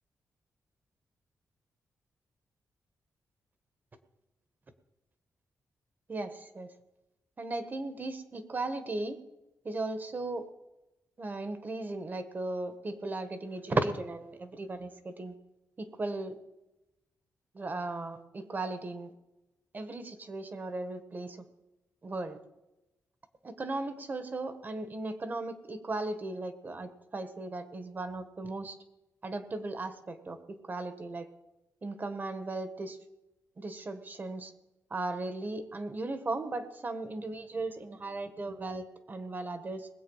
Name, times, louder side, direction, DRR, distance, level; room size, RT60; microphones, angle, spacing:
voice 1, 6.1-6.7 7.4-9.2 9.6-10.4 11.2-15.3 15.8-16.4 17.5-19.1 19.7-21.4 22.0-22.4 23.4-28.7 29.2-31.3 31.8-33.0 33.6-34.5 34.9-39.9, right 2 dB, 30° right, 10 dB, 1.4 m, -36 dB
20.5 x 8.0 x 5.5 m, 0.97 s
wide cardioid pair, 125°, 6 cm